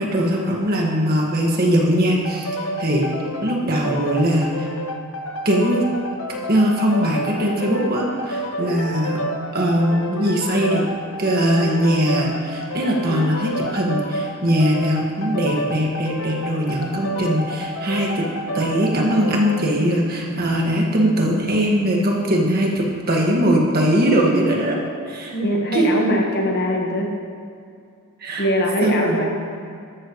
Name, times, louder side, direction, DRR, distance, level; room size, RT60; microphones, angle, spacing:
voice 1, 0.0-2.5 2.8-3.1 3.4-4.7 5.5-5.9 6.5-9.2 9.5-10.8 11.2-18.3 18.5-24.8 25.1-25.4 25.7-25.9 28.2-28.5 28.8-29.2, equal, 45° right, -1 dB, 1.8 m, -20 dB
sound 1, 2.2-19.7, equal, 65° left, 0.8 m, -29 dB
voice 2, 25.3-27.1 28.4-29.3, equal, 45° left, 1 dB, 1.4 m, -21 dB
13.5 x 12.5 x 3.2 m, 2.3 s
head